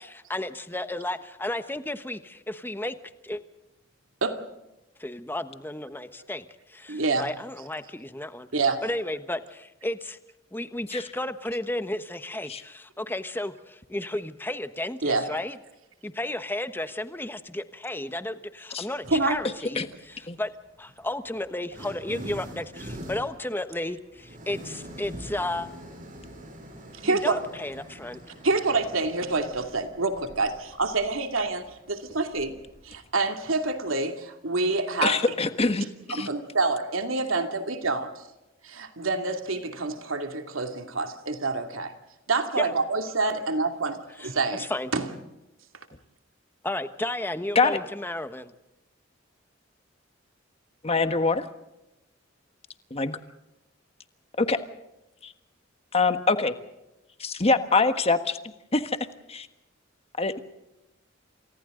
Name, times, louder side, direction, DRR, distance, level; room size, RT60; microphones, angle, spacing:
voice 1, 0.3-3.0 3.2-3.4 5.0-8.5 8.8-10.2 10.5-15.6 16.0-20.5 20.8-25.7 27.0-28.2 42.6-42.7 44.2-44.9 46.6-48.5, left 1 dB, 10° left, 1.2 m, -33 dB
voice 2, 6.9-7.3 8.5-8.8 15.0-15.3 19.1-19.4 27.0-27.4 28.4-32.6 32.8-35.2 36.1-38.3 38.6-41.9 42.3-45.1, right 3 dB, 90° right, 2.6 m, -27 dB
sound 1, 19.0-19.5 20.5-34.0, equal, 45° right, 7.3 m, -44 dB
voice 3, 35.0-36.3 47.5-47.8 50.8-51.5 52.9-53.2 54.4-54.6 55.2-55.3 55.9-56.5 57.2-58.4 58.7-59.0 59.3-59.5 60.2-60.4, left 3 dB, 30° left, 1.5 m, -24 dB
29.5 x 27.0 x 3.9 m
head